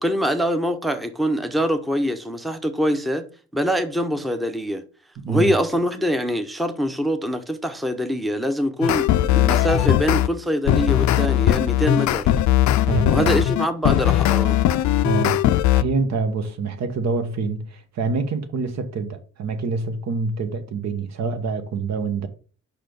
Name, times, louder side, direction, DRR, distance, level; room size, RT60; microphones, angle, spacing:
voice 1, 0.0-3.3 3.5-4.8 5.3-12.3 13.1-14.6, equal, ahead, 0.7 m, -24 dB
voice 2, 5.2-5.5 12.9-13.4 15.0-15.4 15.7-22.3, right 4 dB, 60° right, 1.1 m, -26 dB
sound 1, 8.8-10.3 10.7-15.8, left 13 dB, 70° left, 0.5 m, -19 dB
5.2 x 4.4 x 5.2 m
cardioid pair, 90°, 30 cm